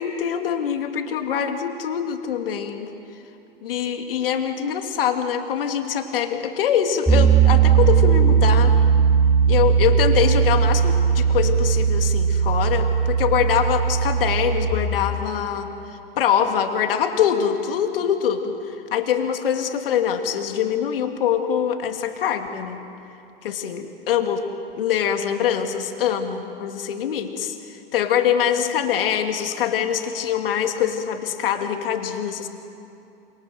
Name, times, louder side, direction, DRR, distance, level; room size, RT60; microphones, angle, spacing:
voice 1, 0.0-2.9 3.6-8.7 9.5-15.7 16.2-18.6 18.9-22.8 23.4-24.4 24.7-27.5 27.9-32.5, left 8 dB, 70° left, 5 dB, 2.7 m, -24 dB
Piano, 7.1-14.7, right 7 dB, ahead, 2.1 m, -18 dB
27.5 x 26.0 x 7.8 m, 2.7 s
hypercardioid pair, 100°, 29 cm